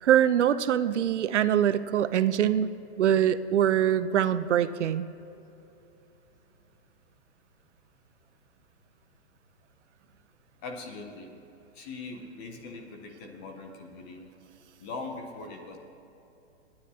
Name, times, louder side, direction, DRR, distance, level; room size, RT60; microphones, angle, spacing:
voice 1, 0.0-2.7 3.0-5.1, right 10 dB, 90° right, 14 dB, 0.6 m, -23 dB
voice 2, 10.6-11.3 11.7-14.3 14.8-15.8, left 3 dB, 10° left, 3 dB, 0.4 m, -41 dB
28.0 x 9.8 x 2.8 m, 2.9 s
hypercardioid pair, 160°, 34 cm